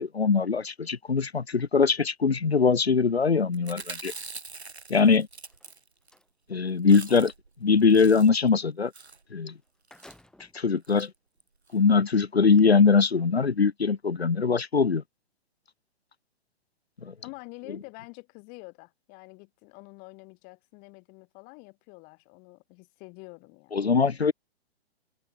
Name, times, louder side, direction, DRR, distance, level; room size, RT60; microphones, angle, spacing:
voice 1, 0.0-4.1 4.9-5.3 6.5-7.3 7.6-8.9 9.3-9.6 10.5-11.1 11.7-15.0 17.0-17.1 23.7-24.3, left 5 dB, 70° left, 2.3 m, -22 dB
Chewing mastication, 3.5-6.2 6.5-6.6 6.8-7.5 7.8-8.5 8.9-9.2 9.9-10.2 10.8-11.1 11.4-11.5 11.7-11.8, right 4 dB, 75° right, 2.6 m, -43 dB
sound 1, 5.4-6.3 9.2-9.3 9.6-10.7 11.3-11.4 12.4-12.6, left 1 dB, ahead, 5.3 m, -55 dB
voice 2, 17.2-23.8, left 31 dB, 30° left, 7.9 m, -47 dB
figure-of-eight pair, 120°, 32 cm